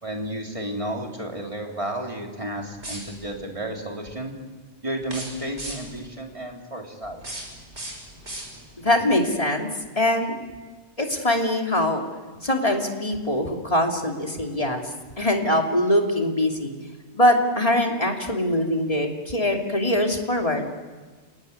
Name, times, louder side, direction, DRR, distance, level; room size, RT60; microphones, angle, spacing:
voice 1, 0.0-4.3 4.8-7.2, right 1 dB, 30° right, 1 dB, 3.4 m, -32 dB
sound 1, 2.8-3.4 5.0-6.1 7.0-8.9, right 1 dB, 80° right, 6.4 m, -38 dB
voice 2, 8.8-9.7 10.0-10.3 11.0-12.0 12.4-14.8 15.2-16.7 17.1-20.7, left 1 dB, 30° left, 2 dB, 3.0 m, -22 dB
29.5 x 18.5 x 9.7 m, 1.4 s
omnidirectional pair, 1.1 m